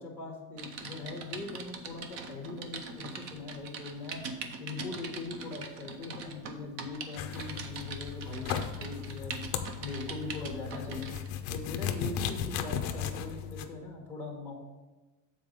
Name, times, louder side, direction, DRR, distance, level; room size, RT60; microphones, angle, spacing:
voice 1, 0.0-4.2 4.6-9.4 9.8-11.1 11.5-14.5, left 3 dB, 5° left, 0 dB, 1.2 m, -41 dB
Typing, 0.6-11.3 11.8-12.0, right 5 dB, 60° right, 0.8 m, -43 dB
sound 1, 7.2-13.6, left 8 dB, 40° left, 0.4 m, -36 dB
7.3 x 4.2 x 5.1 m, 1.2 s
cardioid pair, 170°, 45 cm